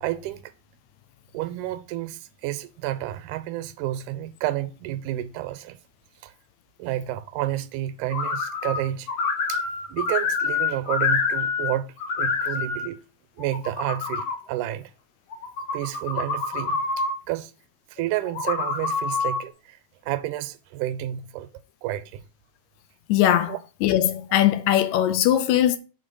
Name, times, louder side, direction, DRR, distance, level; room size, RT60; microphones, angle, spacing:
voice 1, 0.0-0.5 1.3-5.8 6.2-6.3 6.8-9.1 9.5-13.0 13.4-14.9 15.7-17.5 17.9-21.5 21.8-22.3 23.5-23.6, right 14 dB, 85° right, 2.1 m, -30 dB
sound 1, 8.1-8.8 9.1-11.7 12.0-12.8 13.4-14.4 15.3-17.1 18.2-19.4, left 5 dB, 65° left, 2.1 m, -26 dB
voice 2, 23.1-23.5 23.8-25.8, left 12 dB, 80° left, 1.8 m, -20 dB
6.7 x 4.0 x 5.2 m
omnidirectional pair, 3.5 m